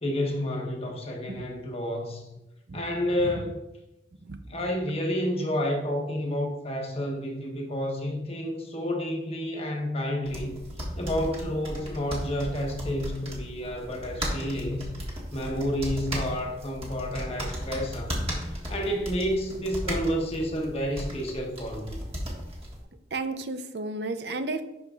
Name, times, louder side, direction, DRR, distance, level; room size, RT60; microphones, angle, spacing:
voice 1, 0.0-2.2 2.7-3.6 4.5-10.6 11.0-14.9 15.3-22.0, equal, 35° left, 1 dB, 1.1 m, -30 dB
sound 1, 10.3-22.8, equal, 35° right, 1.6 m, -35 dB
voice 2, 23.1-24.6, right 2 dB, 70° right, 9 dB, 0.6 m, -32 dB
11.5 x 4.9 x 2.4 m, 0.94 s
head